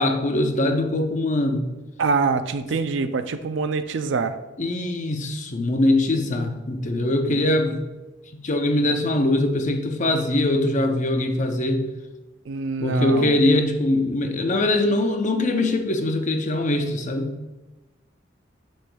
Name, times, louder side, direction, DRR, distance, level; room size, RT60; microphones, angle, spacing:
voice 1, 0.0-1.7 4.6-7.9 8.3-11.8 12.8-17.3, left 1 dB, 40° left, 5 dB, 0.6 m, -22 dB
voice 2, 2.0-4.4 7.3-7.4 12.5-13.4, right 4 dB, 75° right, 10 dB, 0.4 m, -25 dB
7.9 x 6.3 x 2.3 m, 1.1 s
head